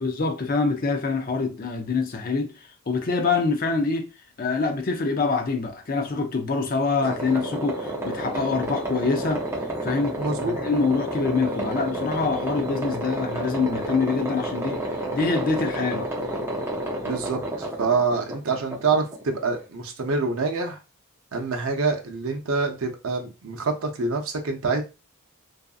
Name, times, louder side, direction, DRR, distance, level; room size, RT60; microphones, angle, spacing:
voice 1, 0.0-2.5 2.9-4.1 4.4-9.4 9.8-14.8 15.1-16.1, left 4 dB, 40° left, 0.5 m, -25 dB
sound 1, 7.0-19.6, right 1 dB, 10° right, 0.5 m, -30 dB
voice 2, 10.2-10.6 17.0-20.8 21.3-24.8, right 4 dB, 70° right, 0.6 m, -26 dB
2.7 x 2.5 x 2.3 m
head